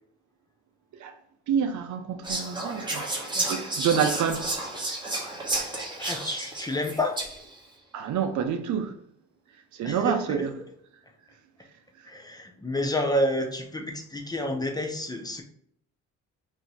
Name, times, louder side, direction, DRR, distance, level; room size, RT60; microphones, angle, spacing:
voice 1, 1.5-3.1 3.5-4.5 7.9-8.9 9.8-10.5, right 7 dB, 75° right, 0.6 m, -27 dB
Whispering, 2.2-7.6, right 2 dB, 15° right, 1.0 m, -31 dB
voice 2, 6.0-7.2 9.8-10.5 12.1-15.4, left 1 dB, 15° left, 0.6 m, -29 dB
2.8 x 2.7 x 4.1 m
cardioid pair, 90°, 30 cm